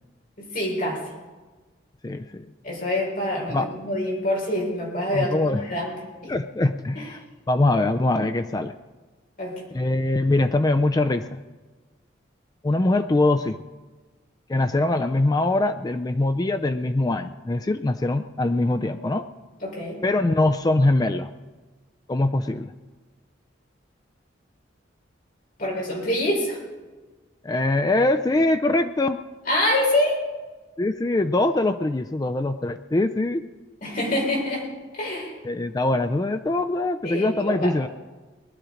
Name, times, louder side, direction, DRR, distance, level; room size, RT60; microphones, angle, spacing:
voice 1, 0.4-1.0 2.6-5.9 6.2-6.3 7.0-7.1 9.4-9.6 19.6-20.0 25.6-26.6 29.5-30.2 33.8-34.7 34.9-35.4 37.0-37.7, left 1 dB, 45° left, -2 dB, 4.3 m, -26 dB
voice 2, 2.0-2.5 3.5-3.7 5.1-5.6 6.3-8.7 9.7-11.4 12.6-13.6 14.5-19.3 20.0-21.3 22.1-22.7 27.4-29.2 30.8-33.4 35.4-37.9, left 2 dB, 20° left, 8 dB, 0.3 m, -23 dB
20.0 x 12.0 x 5.0 m, 1.3 s
head